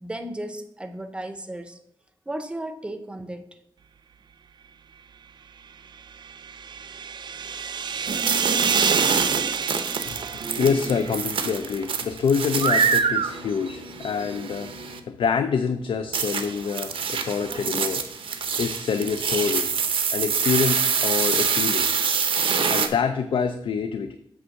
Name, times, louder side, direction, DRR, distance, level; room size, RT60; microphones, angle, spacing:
voice 1, 0.0-1.8 2.3-3.6, right 1 dB, 10° right, 7 dB, 0.6 m, -34 dB
sound 1, 6.0-11.6, right 6 dB, 55° right, 0.4 m, -28 dB
sound 2, 8.1-15.0 16.1-22.9, right 6 dB, 75° right, 0.7 m, -25 dB
voice 2, 10.5-18.0 18.6-19.7 20.1-21.9 22.7-24.2, left 6 dB, 75° left, 10 dB, 0.4 m, -26 dB
8.0 x 3.5 x 6.3 m, 0.79 s
wide cardioid pair, 155°, 9 cm